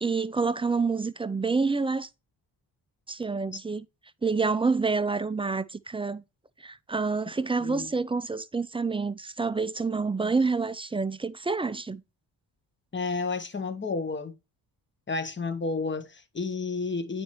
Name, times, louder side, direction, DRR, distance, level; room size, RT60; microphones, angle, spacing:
voice 1, 0.0-2.1 3.1-3.9 4.2-6.2 6.6-12.0, right 4 dB, 15° right, 0.4 m, -28 dB
voice 2, 12.9-14.4 15.1-17.2, left 4 dB, 25° left, 1.1 m, -31 dB
9.3 x 4.3 x 3.0 m
cardioid pair, 80°, 44 cm